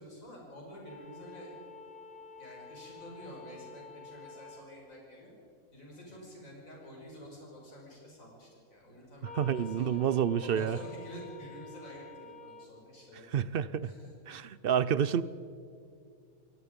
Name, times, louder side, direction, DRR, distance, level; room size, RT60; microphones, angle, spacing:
voice 1, 0.0-1.5 2.4-5.3 5.7-10.0 10.4-13.4 13.8-14.1, equal, 60° left, -2 dB, 6.1 m, -49 dB
sound 1, 0.9-4.6 9.2-12.7, left 3 dB, 5° left, 1.5 m, -49 dB
voice 2, 9.4-10.8 13.3-13.9 14.3-15.2, right 8 dB, 65° right, 17 dB, 0.5 m, -29 dB
29.0 x 18.5 x 5.2 m, 2.5 s
omnidirectional pair, 1.6 m